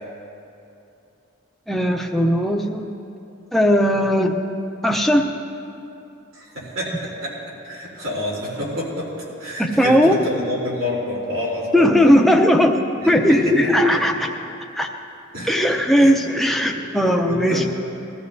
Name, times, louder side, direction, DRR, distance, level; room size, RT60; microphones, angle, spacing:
voice 1, 1.7-2.9 3.5-4.4 4.8-5.3 9.6-10.2 11.7-14.3 14.8-14.9 15.5-17.7, equal, ahead, 2 dB, 0.6 m, -17 dB
voice 2, 6.3-7.3 7.6-9.1 9.4-11.9 13.0-13.5 15.3-15.5 16.0-16.1 16.7-16.9 17.2-17.7, left 1 dB, 80° right, -5 dB, 3.5 m, -28 dB
21.0 x 13.5 x 2.7 m, 2.7 s
head